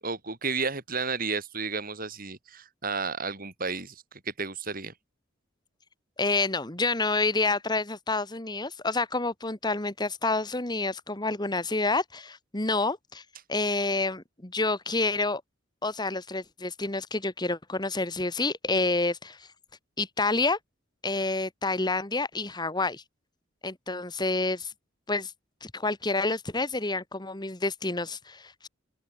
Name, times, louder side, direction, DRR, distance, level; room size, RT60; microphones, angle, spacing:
voice 1, 0.0-4.9, right 4 dB, 45° right, 7.3 m, -32 dB
voice 2, 6.2-13.2 13.5-15.4 15.8-19.5 20.0-20.6 21.0-23.0 23.6-24.7 25.1-25.3 25.6-28.7, left 3 dB, 20° left, 1.9 m, -28 dB
open air
head